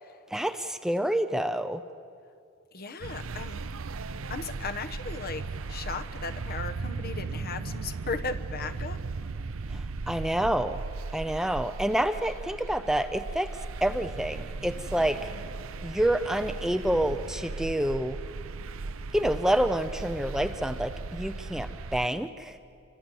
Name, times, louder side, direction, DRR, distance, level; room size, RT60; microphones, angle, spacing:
voice 1, 0.3-1.8 9.7-10.8 11.1-13.5 13.8-15.3 15.8-18.2 19.1-22.6, right 1 dB, ahead, 9 dB, 0.6 m, -28 dB
voice 2, 2.7-3.7 4.3-9.0, left 4 dB, 45° left, 9 dB, 1.2 m, -37 dB
sound 1, 3.0-22.1, right 3 dB, 65° right, 0.6 m, -37 dB
27.0 x 23.0 x 7.8 m, 2.4 s
head